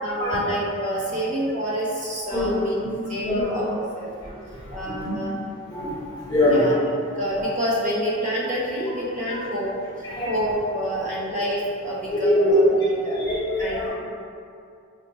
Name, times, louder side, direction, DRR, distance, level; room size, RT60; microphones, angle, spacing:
voice 1, 0.0-2.8 3.1-4.1 4.7-5.3 6.4-9.7 10.0-12.7 13.0-13.2 13.6-13.9, equal, 35° right, -6 dB, 0.7 m, -28 dB
voice 2, 4.5-5.1 5.7-6.6 10.0-10.3 12.1-12.6 13.1-13.9, left 1 dB, 15° left, -10 dB, 1.0 m, -23 dB
3.2 x 2.1 x 4.0 m, 2.4 s
head